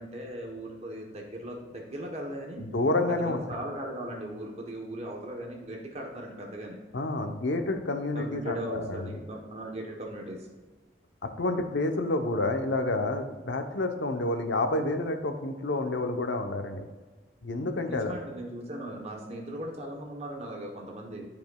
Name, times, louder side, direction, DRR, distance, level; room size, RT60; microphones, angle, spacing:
voice 1, 0.0-2.6 3.1-6.8 8.1-10.5 17.9-21.2, right 1 dB, 35° right, 0 dB, 1.0 m, -38 dB
voice 2, 2.6-3.4 6.9-9.1 11.2-16.9 17.4-18.1, left 2 dB, 85° left, 6 dB, 0.8 m, -29 dB
12.0 x 5.2 x 2.3 m, 1.3 s
head